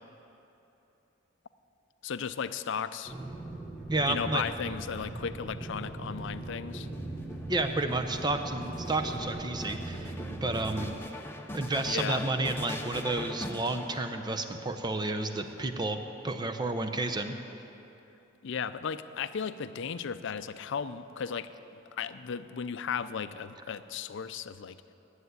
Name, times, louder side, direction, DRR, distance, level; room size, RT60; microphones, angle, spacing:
voice 1, 2.0-3.1 4.1-6.9 11.8-12.2 18.4-21.5 21.9-24.8, left 6 dB, 65° left, 13 dB, 0.5 m, -35 dB
sound 1, 3.1-11.0, right 2 dB, 5° right, 1.1 m, -39 dB
voice 2, 3.9-4.4 7.5-10.1 10.4-10.9 11.5-16.0 16.2-17.3, right 2 dB, 20° right, 6 dB, 0.7 m, -31 dB
sound 2, 6.7-14.7 15.5-16.3, left 1 dB, 10° left, 0.7 m, -42 dB
10.5 x 8.0 x 9.5 m, 3.0 s
head